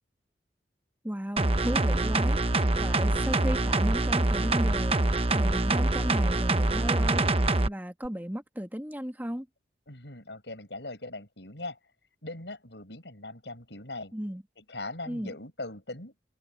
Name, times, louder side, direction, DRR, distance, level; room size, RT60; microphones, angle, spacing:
voice 1, 1.0-2.4 2.8-5.0 5.3-9.5 14.1-14.4 15.1-15.3, equal, 10° right, 2.3 m, -35 dB
sound 1, 1.4-7.7 8.1-8.2, right 2 dB, 35° right, 1.0 m, -25 dB
voice 2, 9.9-11.8 12.2-14.1 14.6-16.1, left 2 dB, 75° left, 7.0 m, -40 dB
head